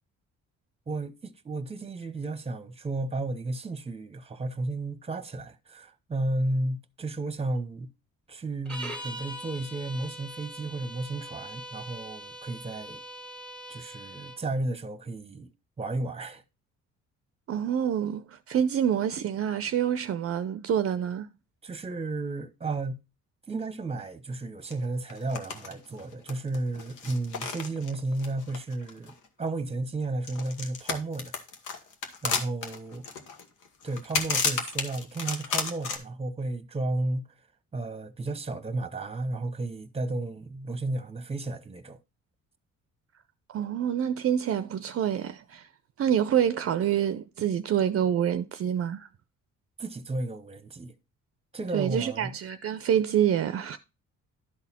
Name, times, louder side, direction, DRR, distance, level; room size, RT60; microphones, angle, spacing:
voice 1, 0.9-7.9 8.3-13.0 13.7-16.4 21.6-23.0 23.5-31.3 32.2-33.0 33.8-37.3 37.7-42.0 49.8-50.9 51.5-52.3, right 2 dB, 20° right, 0.9 m, -33 dB
sound 1, 8.7-14.4, equal, 5° left, 1.1 m, -42 dB
voice 2, 17.5-21.3 43.5-45.7 46.0-49.1 51.7-53.8, right 9 dB, 50° right, 0.5 m, -27 dB
sound 2, 24.7-24.8 25.1-25.7 26.0-29.3 30.2-36.0, left 5 dB, 85° left, 1.4 m, -32 dB
11.5 x 4.1 x 4.2 m
cardioid pair, 90°, 30 cm